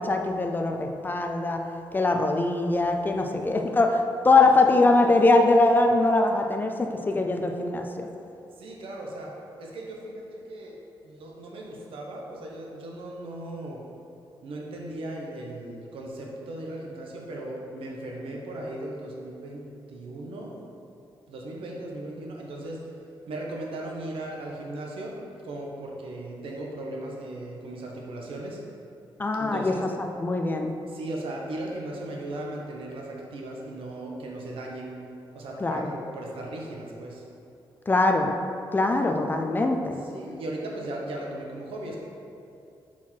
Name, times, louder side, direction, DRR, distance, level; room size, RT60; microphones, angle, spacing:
voice 1, 0.0-1.6 1.9-8.1 29.2-29.7 30.2-30.7 35.6-35.9 37.9-38.3 38.7-40.0, left 2 dB, 20° left, 4 dB, 0.4 m, -22 dB
voice 2, 8.6-9.3 9.6-13.8 14.4-20.5 21.3-22.8 23.3-25.1 25.4-28.6 29.4-29.9 30.9-35.0 35.3-37.2 40.0-42.0, right 1 dB, 85° right, -1 dB, 1.0 m, -37 dB
5.7 x 4.5 x 4.5 m, 2.7 s
wide cardioid pair, 140°, 9 cm